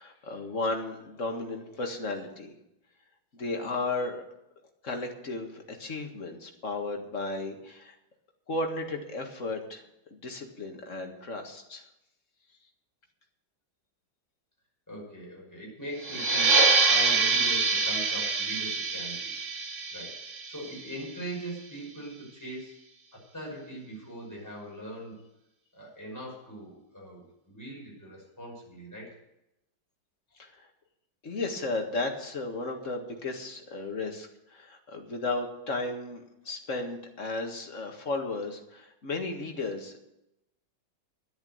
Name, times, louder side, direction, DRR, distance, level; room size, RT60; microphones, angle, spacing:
voice 1, 0.0-2.5 3.3-4.2 4.8-7.9 8.5-9.8 10.2-11.8 30.4-30.7 31.2-40.0, left 2 dB, 45° left, 3 dB, 2.1 m, -34 dB
voice 2, 14.9-19.3 19.9-22.7 23.1-25.2 25.7-29.2, right 1 dB, 10° left, -3 dB, 5.7 m, -41 dB
sound 1, 16.0-21.3, right 4 dB, 45° right, 1.3 m, -26 dB
11.5 x 10.0 x 7.8 m, 0.85 s
omnidirectional pair, 2.0 m